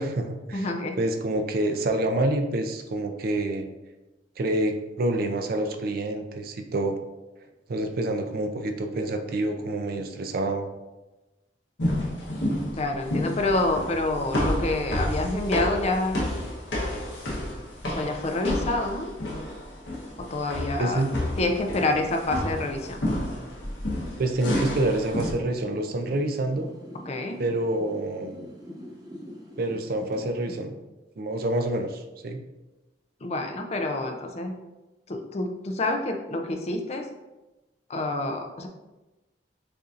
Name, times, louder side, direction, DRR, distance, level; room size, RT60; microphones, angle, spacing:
voice 1, 0.0-0.7 1.0-3.7 4.4-7.0 7.7-10.7 20.8-21.1 24.2-26.7 27.4-28.4 29.6-30.7 31.2-32.4, right 1 dB, 55° right, 6 dB, 0.4 m, -27 dB
voice 2, 0.5-1.0 12.8-16.2 17.9-19.1 20.3-21.1 21.4-23.0 27.1-27.4 33.2-34.6 35.1-37.0 37.9-38.7, left 2 dB, 40° left, 4 dB, 0.5 m, -27 dB
sound 1, 11.8-25.3, left 1 dB, 80° left, 1.0 m, -30 dB
sound 2, 25.6-30.6, equal, 20° right, 0.7 m, -43 dB
6.7 x 2.6 x 2.5 m, 1.1 s
head